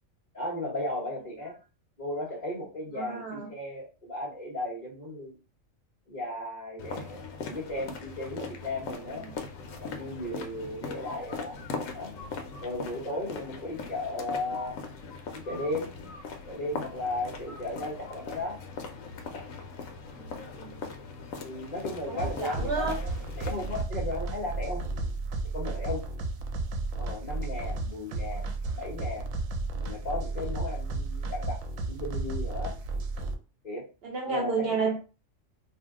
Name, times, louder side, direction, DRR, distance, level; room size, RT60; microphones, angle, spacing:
voice 1, 0.3-1.5 2.0-5.4 6.1-9.3 9.8-11.6 11.9-12.1 12.6-14.8 15.3-15.9 16.4-18.6 21.4-23.1 23.4-24.8 25.5-26.0 27.0-28.5 28.8-29.3 29.7-31.6 31.9-32.8 33.6-33.9 34.3-35.0, left 2 dB, 35° left, 1.0 m, -35 dB
voice 2, 3.0-3.5 9.1-9.4 20.1-20.8 22.1-23.0 34.0-35.0, right 4 dB, 60° right, 0.7 m, -32 dB
sound 1, 6.8-23.8, left 4 dB, 85° left, 1.0 m, -40 dB
sound 2, 22.2-33.4, right 2 dB, 80° right, 1.0 m, -33 dB
2.7 x 2.0 x 3.5 m
omnidirectional pair, 1.3 m